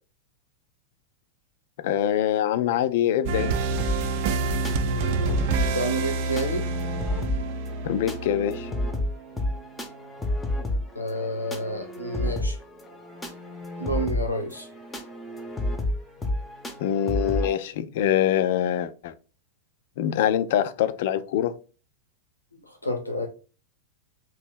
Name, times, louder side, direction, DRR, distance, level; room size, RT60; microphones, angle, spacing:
voice 1, 1.8-3.5 7.8-8.7 16.8-19.1 20.0-21.5, left 10 dB, 55° left, 0.4 m, -24 dB
sound 1, 3.3-10.0, right 4 dB, 50° right, 0.4 m, -28 dB
sound 2, 3.8-17.5, left 1 dB, 10° left, 0.7 m, -31 dB
voice 2, 4.8-6.7 11.0-12.6 13.8-14.7 22.5-23.3, equal, 85° left, 0.8 m, -30 dB
3.0 x 2.7 x 3.6 m
figure-of-eight pair, 90°, 0 cm